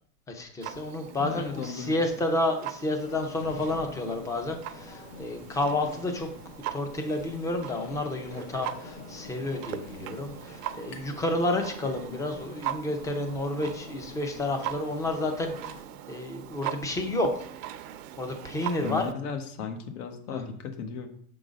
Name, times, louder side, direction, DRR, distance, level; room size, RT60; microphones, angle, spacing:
voice 1, 0.3-6.3 6.7-15.8 16.1-17.4 18.2-19.1 20.3-20.4, left 2 dB, 10° left, 5 dB, 0.5 m, -30 dB
Clock, 0.6-19.1, right 11 dB, 80° right, 0.7 m, -41 dB
voice 2, 1.2-2.0 18.8-21.1, left 6 dB, 75° left, 6 dB, 1.3 m, -35 dB
sound 1, 3.0-15.8, left 7 dB, 55° left, 0.8 m, -47 dB
sound 2, 10.9-11.3 11.6-12.6, left 4 dB, 30° left, 1.2 m, -48 dB
6.6 x 3.9 x 5.1 m, 0.62 s
supercardioid pair, 140°, 45 cm